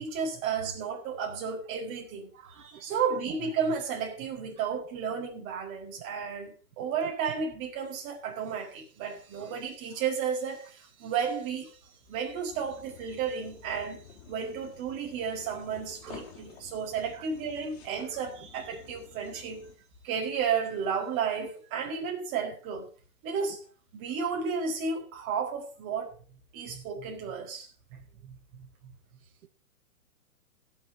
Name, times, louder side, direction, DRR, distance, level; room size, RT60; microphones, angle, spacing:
voice 1, 0.0-11.8 12.1-14.0 14.3-19.6 20.0-22.9 23.2-23.6 23.9-26.1 26.5-28.7, right 6 dB, 30° right, 4.5 m, -33 dB
voice 2, 2.3-3.0 9.4-9.6 16.0-16.3 17.1-17.3, right 9 dB, 70° right, 0.9 m, -50 dB
sound 1, 12.5-19.7, left 7 dB, 45° left, 3.9 m, -51 dB
16.5 x 7.4 x 5.4 m
hypercardioid pair, 145°, 45 cm